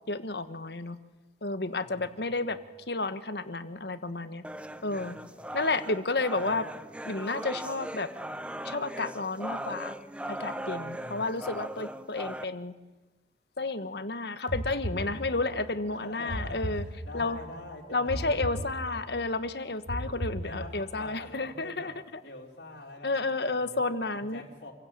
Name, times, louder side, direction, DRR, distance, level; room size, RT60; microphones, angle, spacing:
voice 1, 0.1-1.0 1.4-2.6 2.9-4.4 4.8-5.2 5.5-6.7 7.0-8.1 8.6-9.9 10.3-12.7 13.6-16.8 17.1-17.4 17.9-21.9 23.0-24.4, left 3 dB, 70° left, 11 dB, 1.4 m, -31 dB
voice 2, 1.8-2.5 4.9-5.6 6.4-6.8 10.7-11.4 15.0-15.4 15.9-18.7 19.8-20.1 20.4-22.0 22.2-24.7, left 2 dB, 90° left, -1 dB, 3.3 m, -46 dB
sound 1, 4.4-12.4, right 1 dB, 5° right, 0.8 m, -39 dB
sound 2, 14.5-15.7 16.3-17.4 18.1-19.2 19.9-21.0, equal, 90° right, 3.0 m, -36 dB
27.5 x 16.5 x 8.6 m, 1.2 s
head